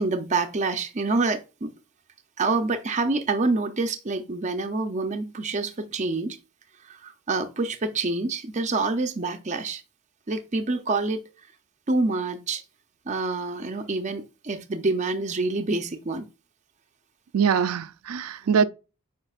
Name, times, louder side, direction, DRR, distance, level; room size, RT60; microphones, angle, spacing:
voice 1, 0.0-1.7 2.4-6.4 6.8-9.8 10.3-11.2 11.9-12.6 13.1-16.3 18.6-18.7, right 3 dB, 35° right, 0.6 m, -27 dB
voice 2, 17.3-18.6, right 7 dB, 80° right, 0.4 m, -23 dB
8.9 x 5.2 x 2.4 m
head